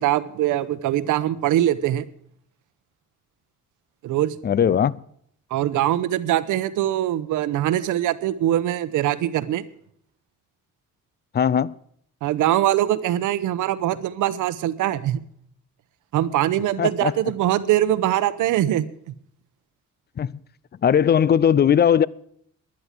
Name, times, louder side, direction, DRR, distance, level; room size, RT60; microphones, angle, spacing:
voice 1, 0.0-2.0 4.0-4.3 5.5-9.6 12.2-15.2 16.1-19.1, right 12 dB, 85° right, 0.9 m, -22 dB
voice 2, 4.4-5.0 11.3-11.8 16.8-17.1 20.2-20.4 20.8-22.1, left 8 dB, 35° left, 0.5 m, -19 dB
11.5 x 11.0 x 7.5 m
cardioid pair, 90°, 30 cm